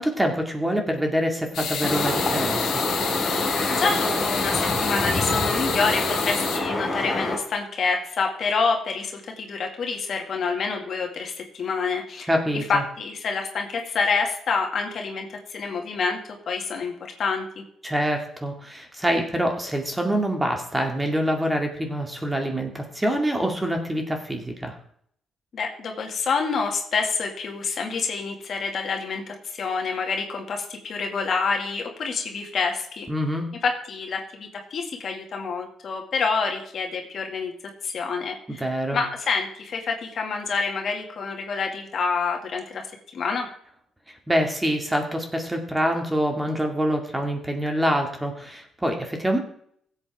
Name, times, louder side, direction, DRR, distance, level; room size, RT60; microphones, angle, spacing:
voice 1, 0.0-2.8 12.3-12.8 17.8-24.7 33.1-33.5 38.5-39.0 44.3-49.4, equal, 10° right, 3 dB, 2.2 m, -25 dB
sound 1, 1.5-6.6, left 6 dB, 80° left, 2.2 m, -29 dB
sound 2, 1.8-7.4, left 2 dB, 35° left, 4.2 m, -26 dB
voice 2, 3.7-12.3 12.7-16.2 16.5-17.6 25.5-33.1 33.6-37.5 37.8-38.7 38.9-42.9 43.1-43.5, left 4 dB, 55° left, 2 dB, 2.1 m, -27 dB
16.0 x 8.0 x 3.6 m, 0.65 s
cardioid pair, 90°, 0 cm